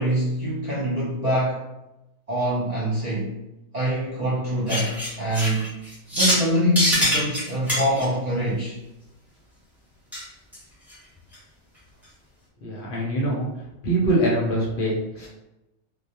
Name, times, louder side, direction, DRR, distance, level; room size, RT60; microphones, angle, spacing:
voice 1, 0.0-1.6 2.3-3.4 3.7-5.8 6.1-8.8, equal, 55° right, -8 dB, 0.4 m, -24 dB
sound 1, 4.7-6.5 6.8-8.0 10.1-10.2 10.5-10.6 10.9-11.0 11.3-11.4, equal, ahead, 0.6 m, -24 dB
voice 2, 12.6-13.5 13.8-15.3, right 1 dB, 55° left, -4 dB, 0.7 m, -23 dB
2.2 x 2.1 x 2.7 m, 0.95 s
omnidirectional pair, 1.3 m